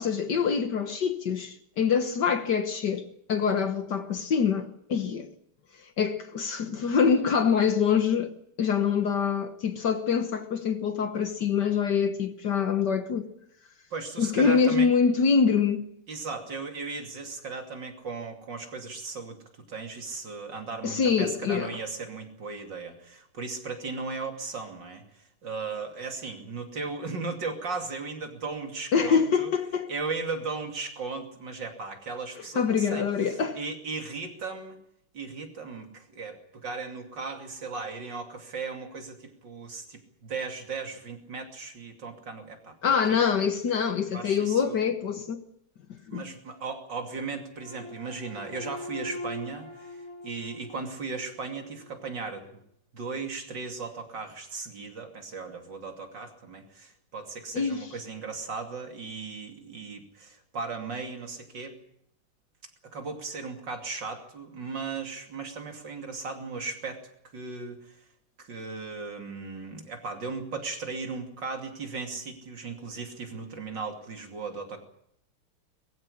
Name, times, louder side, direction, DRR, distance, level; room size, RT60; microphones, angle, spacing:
voice 1, 0.0-5.3 6.0-8.3 8.6-13.3 14.2-15.8 20.8-21.7 28.9-29.9 32.5-33.6 42.8-45.4 46.1-46.2 57.5-57.9, left 6 dB, 55° left, 1.7 m, -25 dB
voice 2, 13.9-14.9 16.1-19.4 19.7-25.0 25.4-29.5 29.9-33.0 33.5-34.8 35.1-43.2 44.1-44.8 46.1-50.0 50.2-52.4 52.9-61.8 62.9-67.0 67.3-67.9 68.4-74.8, right 4 dB, 55° right, 3.3 m, -36 dB
sound 1, 47.6-51.9, left 1 dB, 40° left, 7.8 m, -42 dB
21.5 x 15.5 x 9.9 m
omnidirectional pair, 2.4 m